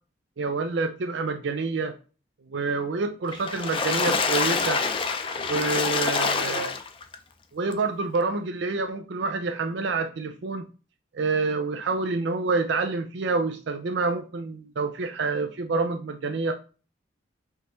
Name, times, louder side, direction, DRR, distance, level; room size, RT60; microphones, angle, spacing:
voice 1, 0.4-2.0 2.5-4.8 5.4-6.8 7.5-10.7 11.1-16.5, right 3 dB, 75° right, 6 dB, 0.5 m, -27 dB
Water / Splash splatter, 3.3-7.2 7.7-7.8 8.1-8.2, left 4 dB, 30° left, 0.4 m, -26 dB
5.4 x 3.0 x 3.3 m, 0.35 s
head